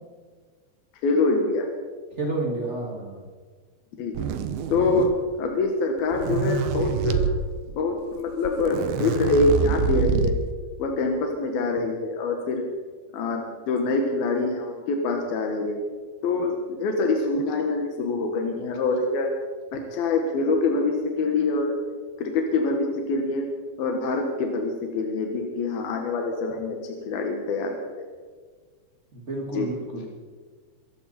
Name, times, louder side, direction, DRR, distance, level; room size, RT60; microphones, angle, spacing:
voice 1, 1.0-1.7 4.0-4.3 4.7-5.1 5.4-7.3 7.7-10.3 10.8-12.6 13.1-15.8 16.2-19.3 19.7-21.7 22.2-23.5 23.8-26.8 27.1-28.1 29.5-29.7, left 3 dB, 65° left, 2 dB, 3.0 m, -25 dB
voice 2, 2.1-3.3 29.1-30.1, right 2 dB, 45° right, -1 dB, 0.9 m, -30 dB
sound 1, 4.1-5.3 6.0-7.3 8.2-8.3 8.5-10.5, right 8 dB, 75° right, 2.3 m, -26 dB
24.5 x 13.5 x 4.3 m, 1.5 s
omnidirectional pair, 5.3 m